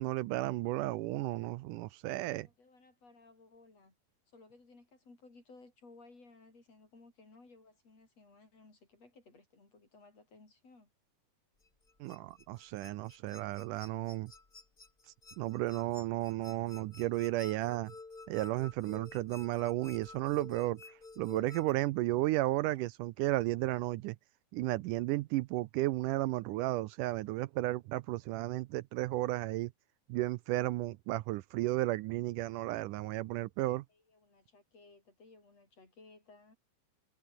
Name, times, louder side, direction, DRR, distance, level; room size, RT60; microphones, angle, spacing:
voice 1, 0.0-2.5 12.0-14.3 15.4-17.9 18.3-20.8 21.2-24.2 24.5-29.7 30.1-33.8, right 17 dB, 80° right, 2.1 m, -33 dB
voice 2, 2.3-4.0 4.3-10.9 33.9-36.6, left 3 dB, 50° left, 8.0 m, -59 dB
sound 1, 11.6-21.7, left 3 dB, 20° left, 1.7 m, -52 dB
omnidirectional pair, 3.8 m